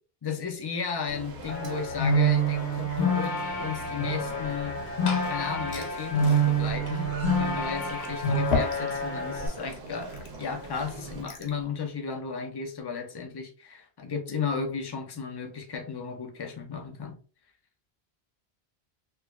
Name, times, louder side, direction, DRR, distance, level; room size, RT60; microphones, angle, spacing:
voice 1, 0.2-4.8 5.3-10.1 10.4-17.2, left 5 dB, 35° left, 0.4 m, -34 dB
sound 1, 1.1-11.2, right 2 dB, 75° right, 1.0 m, -42 dB
sound 2, 1.5-9.5, right 2 dB, 50° left, 0.8 m, -27 dB
Glass / Fill (with liquid), 4.6-11.6, left 4 dB, 80° left, 1.0 m, -37 dB
4.4 x 2.2 x 2.3 m
omnidirectional pair, 1.1 m